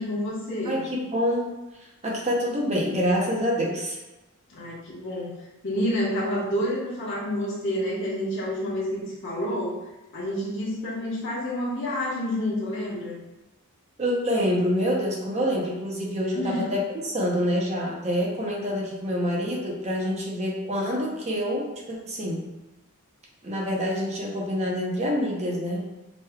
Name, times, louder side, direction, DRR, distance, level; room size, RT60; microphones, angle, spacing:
voice 1, 0.0-0.8 4.5-5.3 5.6-9.8 10.1-13.2 16.3-16.7, left 1 dB, 60° left, -6 dB, 1.3 m, -29 dB
voice 2, 0.6-1.5 2.0-4.0 14.0-22.4 23.4-25.8, equal, 30° right, -2 dB, 0.8 m, -26 dB
5.1 x 3.1 x 2.3 m, 1.0 s
head